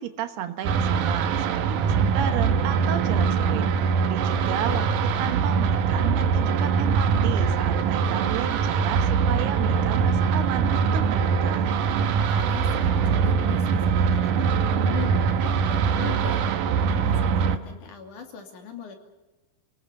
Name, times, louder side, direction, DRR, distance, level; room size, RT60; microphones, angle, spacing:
voice 1, 0.0-3.7 4.0-11.7, right 10 dB, 85° right, 8 dB, 3.2 m, -33 dB
sound 1, 0.6-17.6, right 6 dB, 65° right, 2.3 m, -23 dB
voice 2, 4.5-4.8 12.3-18.9, left 6 dB, 55° left, 4 dB, 3.8 m, -40 dB
29.5 x 19.5 x 7.0 m, 1.1 s
omnidirectional pair, 4.5 m